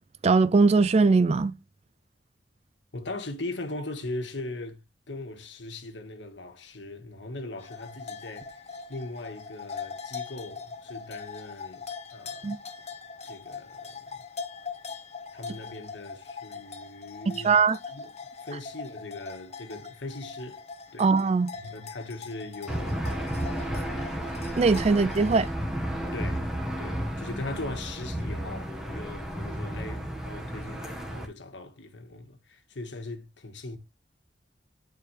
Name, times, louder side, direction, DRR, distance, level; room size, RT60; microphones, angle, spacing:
voice 1, 0.2-1.5 12.4-12.6 17.4-17.8 21.0-21.5 24.6-25.5, right 4 dB, 35° right, 0.4 m, -20 dB
voice 2, 2.9-4.8 5.1-8.6 8.9-12.6 13.2-14.2 15.3-17.6 17.9-18.1 18.4-20.6 20.9-21.1 21.5-23.0 23.8-24.2 26.1-26.5 26.8-33.8, left 2 dB, 85° left, 1.5 m, -39 dB
sound 1, 7.6-25.5, left 5 dB, 35° left, 0.9 m, -42 dB
Aircraft / Engine, 22.7-31.3, equal, 5° right, 1.4 m, -32 dB
11.0 x 4.8 x 3.2 m
head